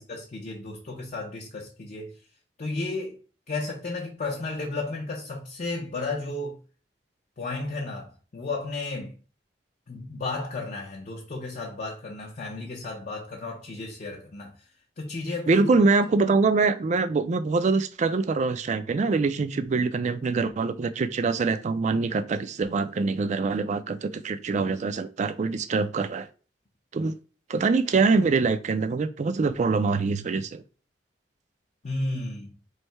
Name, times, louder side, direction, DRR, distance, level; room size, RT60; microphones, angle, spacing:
voice 1, 0.0-2.1 2.6-3.2 3.5-6.6 7.4-9.2 9.9-14.5 15.0-15.7 31.8-32.5, left 2 dB, 45° left, 0.6 m, -33 dB
voice 2, 15.5-26.3 26.9-27.1 27.5-30.6, right 4 dB, 40° right, 0.4 m, -24 dB
3.2 x 2.7 x 4.4 m
head